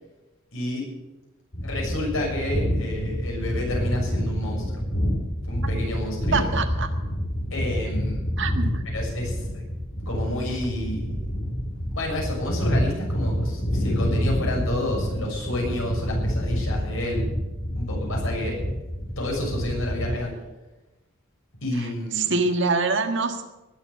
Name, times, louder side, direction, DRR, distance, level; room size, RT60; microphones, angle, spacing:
voice 1, 0.5-0.9 1.6-4.8 5.4-6.5 7.5-8.2 8.9-9.7 10.0-11.1 11.9-17.2 17.7-18.7 19.2-20.3 21.6-22.4, left 1 dB, 85° left, -2 dB, 6.8 m, -30 dB
sound 1, 1.5-20.2, equal, 70° left, 4.2 m, -28 dB
voice 2, 6.3-6.9 8.4-8.8 22.2-23.4, right 4 dB, 65° right, 6 dB, 1.7 m, -24 dB
19.5 x 7.3 x 8.4 m, 1.1 s
head